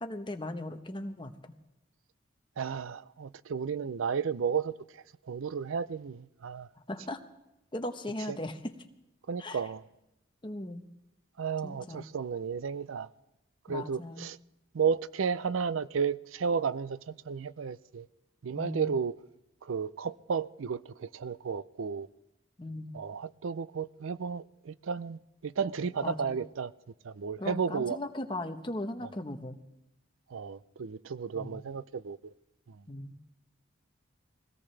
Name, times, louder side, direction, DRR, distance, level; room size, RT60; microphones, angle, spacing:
voice 1, 0.0-1.5 6.8-7.2 7.7-8.7 9.4-9.6 10.4-10.8 11.6-12.1 13.7-14.3 18.5-18.9 22.6-22.9 26.0-26.4 27.4-29.6 31.3-31.7 32.9-33.2, left 1 dB, 25° left, 0.9 m, -38 dB
voice 2, 2.6-6.7 8.3-8.4 9.3-9.8 11.4-13.1 13.7-14.4 14.7-18.1 18.4-19.1 19.6-22.1 22.9-26.7 27.0-28.0 30.3-32.3 32.7-32.8, right 6 dB, 85° right, 0.5 m, -33 dB
23.0 x 17.0 x 3.3 m
head